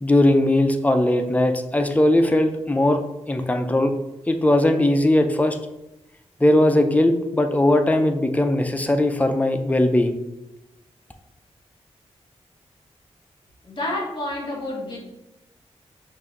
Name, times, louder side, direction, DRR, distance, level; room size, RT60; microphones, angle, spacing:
voice 1, 0.0-3.9 4.3-5.6 6.4-10.2, left 1 dB, 10° left, 6 dB, 0.4 m, -19 dB
voice 2, 13.6-15.0, left 1 dB, 40° left, -3 dB, 1.3 m, -29 dB
5.7 x 2.6 x 2.9 m, 0.93 s
wide cardioid pair, 85°, 12 cm